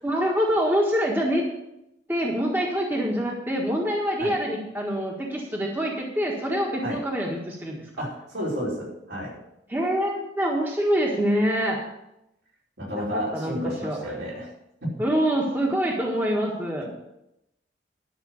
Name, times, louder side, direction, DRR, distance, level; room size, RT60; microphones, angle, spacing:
voice 1, 0.0-1.5 2.1-7.9 9.7-11.8 12.9-14.0 15.0-16.9, equal, 10° right, -1 dB, 1.5 m, -25 dB
voice 2, 8.0-9.4 12.8-14.5 16.8-16.9, equal, 70° right, -4 dB, 4.8 m, -31 dB
11.5 x 6.2 x 8.0 m, 0.86 s
head